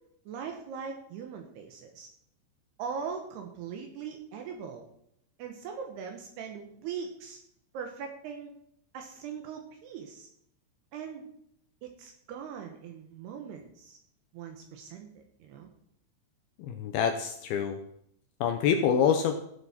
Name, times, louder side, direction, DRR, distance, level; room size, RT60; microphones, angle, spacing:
voice 1, 0.3-2.1 2.8-4.9 5.4-7.4 7.7-8.5 8.9-10.3 10.9-11.3 11.8-14.0 14.3-15.7, right 6 dB, 75° right, 4 dB, 3.0 m, -40 dB
voice 2, 16.6-17.8 18.4-19.4, left 7 dB, 75° left, 6 dB, 2.3 m, -26 dB
16.0 x 7.9 x 4.3 m, 0.72 s
omnidirectional pair, 5.1 m